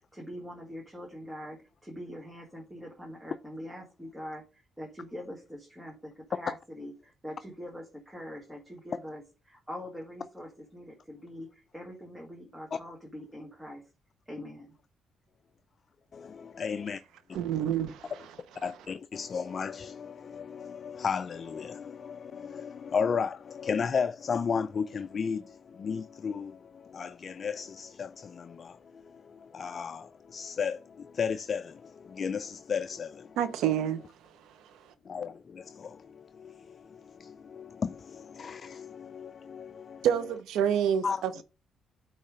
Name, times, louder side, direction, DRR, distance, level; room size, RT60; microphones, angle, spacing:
voice 1, 0.1-13.8 14.3-14.7, equal, 10° right, 1.6 m, -43 dB
voice 2, 16.1-17.0 18.6-33.4 35.1-40.1 41.0-41.2, left 6 dB, 45° left, 0.4 m, -34 dB
voice 3, 17.3-18.1 33.4-34.0 34.6-34.7 40.0-41.4, right 9 dB, 85° right, 0.7 m, -28 dB
8.5 x 3.1 x 4.9 m
cardioid pair, 90°, 0 cm